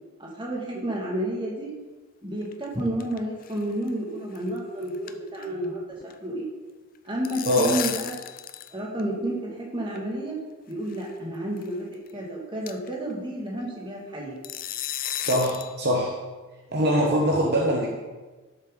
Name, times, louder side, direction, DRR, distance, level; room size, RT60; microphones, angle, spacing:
voice 1, 0.2-1.7 2.2-6.4 7.0-8.2 8.7-10.4 10.7-14.4, right 1 dB, 20° right, -3 dB, 2.0 m, -31 dB
sound 1, 2.4-3.2 3.4-3.6 3.9-4.0 4.4-4.6 4.8-5.7 5.9-6.1 7.0-8.7 9.0-9.1 10.0-10.1 10.9-11.1 11.6-11.7 12.1-12.2 12.7-12.9 14.4-15.7, left 11 dB, 40° left, 0.4 m, -33 dB
voice 2, 7.4-7.8 15.2-16.2 16.7-18.0, equal, 50° right, -1 dB, 1.1 m, -23 dB
11.5 x 6.9 x 3.9 m, 1.3 s
head